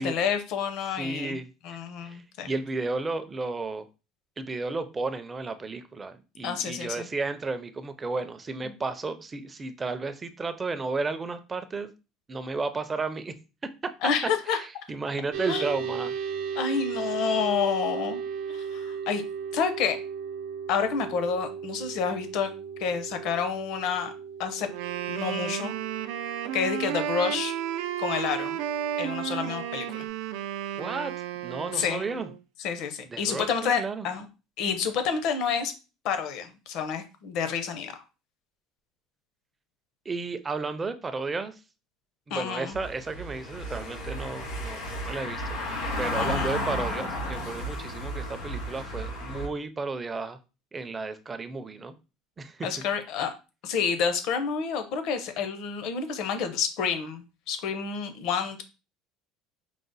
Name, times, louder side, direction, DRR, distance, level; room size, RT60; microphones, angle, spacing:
voice 1, 0.0-1.4 1.6-2.5 6.4-7.1 8.6-8.7 14.0-14.6 15.5-15.6 16.6-18.2 18.5-19.2 19.5-20.0 20.7-22.5 22.8-24.1 24.4-24.7 25.1-25.8 26.5-27.5 28.0-28.6 29.0-30.1 31.7-32.0 32.6-34.3 34.6-35.7 36.0-37.9 42.3-42.8 46.1-46.5 52.6-53.3 53.6-58.6, left 6 dB, 55° left, 8 dB, 0.7 m, -29 dB
voice 2, 0.9-3.9 4.4-11.9 12.3-13.3 14.5-16.1 30.8-32.3 33.1-34.1 40.1-41.6 42.3-45.6 46.0-50.4 50.7-51.9 52.4-52.7, right 3 dB, 15° right, 9 dB, 0.4 m, -33 dB
sound 1, 15.3-30.1, right 7 dB, 65° right, 0.8 m, -37 dB
Wind instrument woodwind instrument, 24.7-32.4, right 10 dB, 85° right, 0.4 m, -33 dB
Car passing by / Engine, 42.7-49.5, left 1 dB, 85° left, 2.0 m, -33 dB
4.8 x 2.1 x 3.9 m, 0.30 s
cardioid pair, 155°, 0 cm